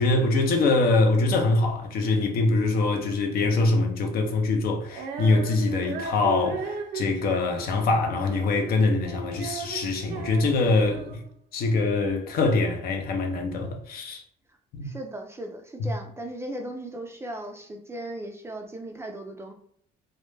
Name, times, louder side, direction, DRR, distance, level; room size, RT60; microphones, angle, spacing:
voice 1, 0.0-11.2 11.5-14.2 14.7-14.9 15.8-15.9, left 3 dB, 60° left, 0.5 m, -24 dB
Female singing, 4.9-11.3, right 4 dB, 90° right, 0.4 m, -36 dB
voice 2, 14.8-19.5, right 1 dB, 15° right, 0.3 m, -37 dB
2.1 x 2.1 x 3.1 m
cardioid pair, 110°, 17 cm